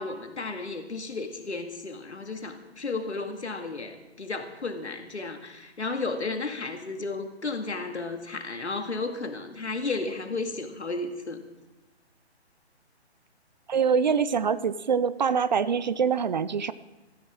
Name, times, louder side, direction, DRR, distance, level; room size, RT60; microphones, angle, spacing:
voice 1, 0.0-11.4, left 3 dB, 80° left, 6 dB, 2.1 m, -33 dB
voice 2, 13.7-16.7, right 6 dB, 40° right, 17 dB, 0.6 m, -24 dB
20.0 x 14.0 x 3.7 m, 1.1 s
figure-of-eight pair, 140°, 33 cm